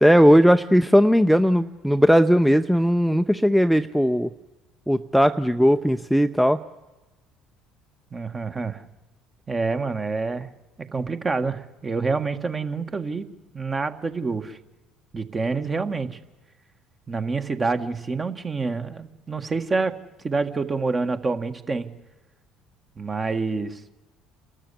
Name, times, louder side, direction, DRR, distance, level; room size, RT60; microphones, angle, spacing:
voice 1, 0.0-4.3 4.9-6.6, equal, ahead, 10 dB, 0.7 m, -18 dB
voice 2, 8.1-8.8 9.5-10.5 10.8-13.3 13.5-14.6 15.1-16.2 17.1-20.0 20.2-21.9 23.0-23.8, right 4 dB, 30° right, 8 dB, 1.6 m, -27 dB
29.0 x 13.5 x 8.4 m, 1.1 s
hypercardioid pair, 60°, 0 cm